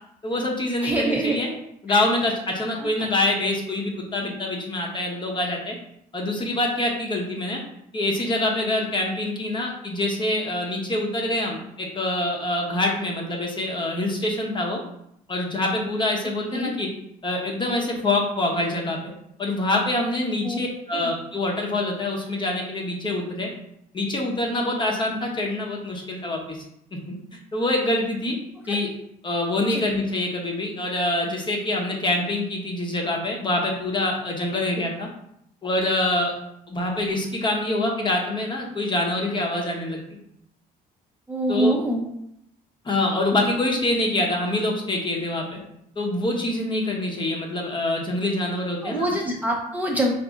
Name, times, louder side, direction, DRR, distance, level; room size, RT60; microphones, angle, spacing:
voice 1, 0.2-1.5 1.8-5.7 6.1-7.6 7.9-14.8 15.3-16.9 17.2-19.0 19.4-23.5 23.9-26.6 27.1-27.2 27.5-28.4 28.7-28.9 29.2-35.1 35.6-36.3 36.7-40.0 41.5-41.7 42.8-45.6 46.0-49.1, left 1 dB, 30° left, 0 dB, 0.9 m, -25 dB
voice 2, 0.8-1.5 1.9-2.0 2.8-2.9 16.5-16.7 20.4-20.6 20.9-21.1 29.7-29.8 41.3-42.1 48.8-50.1, right 1 dB, 10° right, -2 dB, 0.6 m, -25 dB
4.0 x 2.7 x 3.6 m, 0.76 s
cardioid pair, 110°, 17 cm